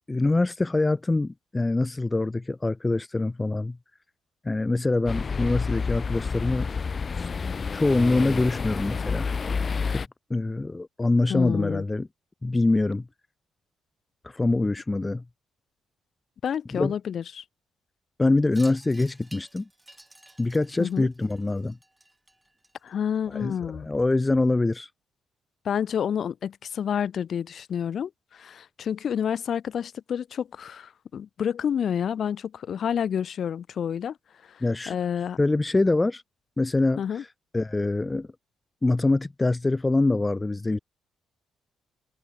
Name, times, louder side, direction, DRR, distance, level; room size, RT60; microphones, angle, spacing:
voice 1, 0.1-3.8 4.4-6.7 7.2-7.3 7.7-9.3 9.9-12.1 12.4-13.1 14.2-15.2 16.7-16.9 18.2-19.7 20.4-21.8 23.3-24.9 34.6-35.0 35.4-36.2 36.6-37.3 37.5-38.3 38.8-40.8, left 2 dB, 20° left, 0.4 m, -24 dB
sound 1, 5.1-10.1, left 5 dB, 35° left, 0.9 m, -29 dB
voice 2, 11.3-11.8 16.4-17.4 20.8-21.1 22.8-23.9 25.6-34.2 34.5-34.6 34.9-35.4 37.0-37.2, left 8 dB, 60° left, 1.1 m, -29 dB
Wind chime, 18.5-23.2, right 1 dB, 10° right, 5.6 m, -52 dB
cardioid pair, 90°, 0 cm